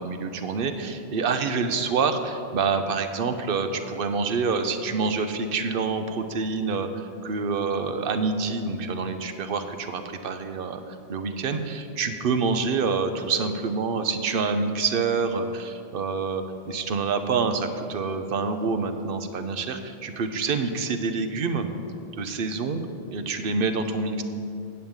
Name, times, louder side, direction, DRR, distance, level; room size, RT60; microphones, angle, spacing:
voice 1, 0.0-10.8 11.1-21.7 22.2-22.8 23.1-24.2, right 4 dB, 60° right, 8 dB, 0.8 m, -27 dB
8.8 x 5.5 x 8.0 m, 2.5 s
omnidirectional pair, 1.1 m